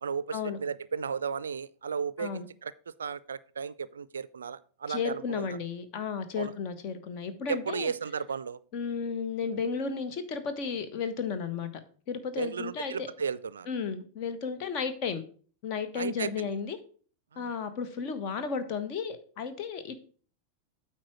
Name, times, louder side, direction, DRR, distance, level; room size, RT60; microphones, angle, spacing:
voice 1, 0.0-2.7 3.0-5.5 6.4-6.5 7.5-8.6 12.4-13.7 15.9-16.5 17.3-17.5, right 6 dB, 70° right, 18 dB, 0.3 m, -34 dB
voice 2, 4.9-7.9 8.7-11.7 12.1-13.1 13.7-15.2 15.6-16.8 17.4-20.0, left 5 dB, 40° left, 9 dB, 1.2 m, -33 dB
8.6 x 4.4 x 6.1 m, 0.43 s
figure-of-eight pair, 90°, 0 cm